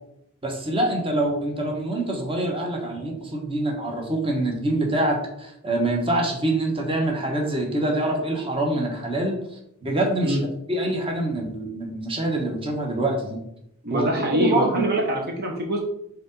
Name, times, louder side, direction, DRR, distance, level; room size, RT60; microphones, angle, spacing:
voice 1, 0.4-9.4 9.8-10.4 10.7-13.4 13.9-14.9, right 1 dB, 25° right, 1 dB, 1.2 m, -25 dB
voice 2, 13.8-15.8, right 1 dB, 45° right, 1 dB, 1.0 m, -24 dB
5.1 x 4.0 x 5.3 m, 0.77 s
head